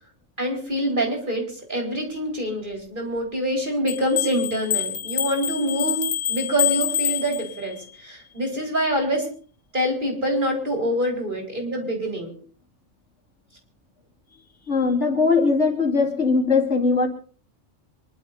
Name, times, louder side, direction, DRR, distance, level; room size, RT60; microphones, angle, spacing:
voice 1, 0.4-9.3 9.7-12.3, equal, 40° right, 1 dB, 4.5 m, -25 dB
sound 1, 3.9-7.8, left 10 dB, 85° left, 1.8 m, -26 dB
voice 2, 14.7-17.1, left 4 dB, 65° left, 1 dB, 3.1 m, -20 dB
25.0 x 11.5 x 4.1 m, 0.42 s
omnidirectional pair, 1.3 m